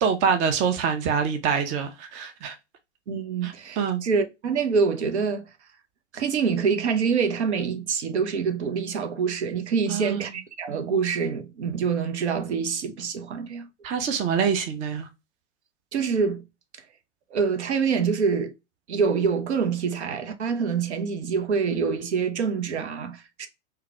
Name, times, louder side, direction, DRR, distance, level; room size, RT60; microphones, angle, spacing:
voice 1, 0.0-2.6 3.4-4.0 9.9-10.3 13.8-15.1, right 6 dB, 20° right, 0.4 m, -25 dB
voice 2, 3.1-5.4 6.1-13.7 15.9-16.4 17.3-18.5 18.9-23.5, right 5 dB, 70° right, 0.7 m, -26 dB
3.6 x 2.2 x 2.7 m
figure-of-eight pair, 100°, 35 cm